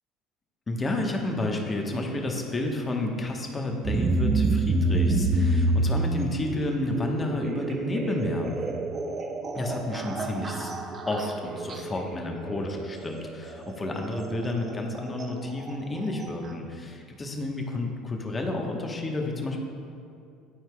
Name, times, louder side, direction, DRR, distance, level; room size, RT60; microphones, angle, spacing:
voice 1, 0.7-8.6 9.5-10.7 11.1-19.6, left 2 dB, 25° left, 1 dB, 1.1 m, -31 dB
sound 1, 3.8-16.5, right 2 dB, 35° right, 0.6 m, -29 dB
12.5 x 4.5 x 2.3 m, 2.4 s
hypercardioid pair, 75°, 0 cm